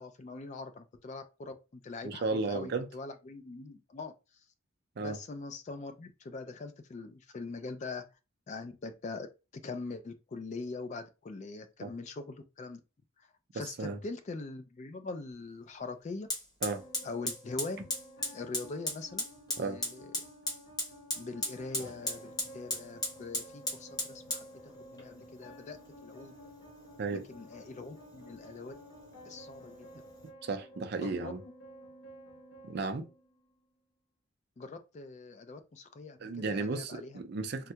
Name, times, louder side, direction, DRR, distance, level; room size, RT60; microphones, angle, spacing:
voice 1, 0.0-4.1 5.0-8.0 8.5-9.3 9.5-12.8 13.2-13.3 13.5-16.3 17.0-17.9 18.3-19.2 19.6-20.1 21.2-26.4 27.1-28.7 29.3-29.9 31.0-31.3 34.6-37.2, left 3 dB, 35° left, 0.3 m, -42 dB
voice 2, 2.0-2.9 5.0-5.2 11.8-11.9 13.8-14.0 16.6-16.8 19.6-19.8 27.0-27.2 30.4-31.4 32.6-33.1 36.2-37.7, right 3 dB, 50° right, 0.4 m, -34 dB
Fire, 15.3-15.4 16.3-30.3, left 1 dB, 20° left, 0.9 m, -39 dB
sound 1, 16.7-33.7, equal, 65° left, 1.2 m, -53 dB
3.4 x 2.2 x 2.8 m
head